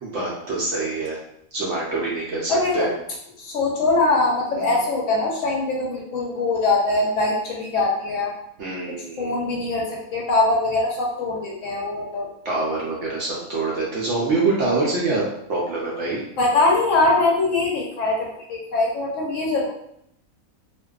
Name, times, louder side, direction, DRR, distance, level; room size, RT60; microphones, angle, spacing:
voice 1, 0.0-1.2 1.5-2.9 4.5-4.8 8.6-9.4 12.4-15.2 15.5-16.2, right 3 dB, 65° right, -4 dB, 0.7 m, -25 dB
voice 2, 2.5-2.9 3.4-8.3 8.9-12.3 16.4-19.7, left 2 dB, 70° left, -2 dB, 0.8 m, -22 dB
2.5 x 2.2 x 2.3 m, 0.74 s
omnidirectional pair, 1.6 m